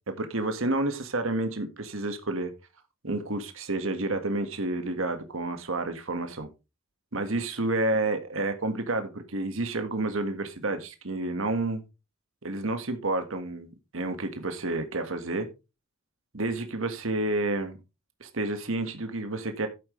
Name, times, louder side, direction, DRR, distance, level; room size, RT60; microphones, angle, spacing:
voice 1, 0.1-2.5 3.0-6.5 7.1-11.8 12.4-15.5 16.3-17.8 18.2-19.7, right 2 dB, 75° right, 1.7 m, -30 dB
12.0 x 8.9 x 3.2 m
head